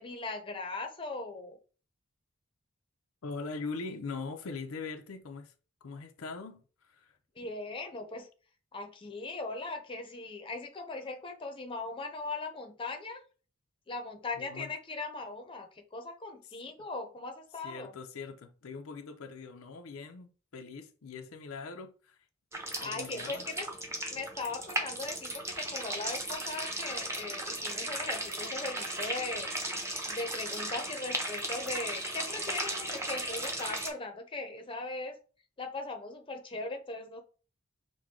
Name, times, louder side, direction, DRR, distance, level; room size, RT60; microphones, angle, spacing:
voice 1, 0.0-1.6 7.4-8.3 8.7-13.2 13.9-17.9 22.8-23.7 24.1-29.5 30.1-35.1 35.6-37.2, left 3 dB, 25° left, 0.7 m, -39 dB
voice 2, 3.2-5.5 5.8-7.1 14.3-14.7 16.4-16.5 17.6-22.2 22.8-23.5, left 4 dB, 85° left, 0.6 m, -42 dB
sound 1, 22.5-33.9, right 1 dB, 15° right, 0.8 m, -36 dB
6.1 x 2.2 x 3.6 m
head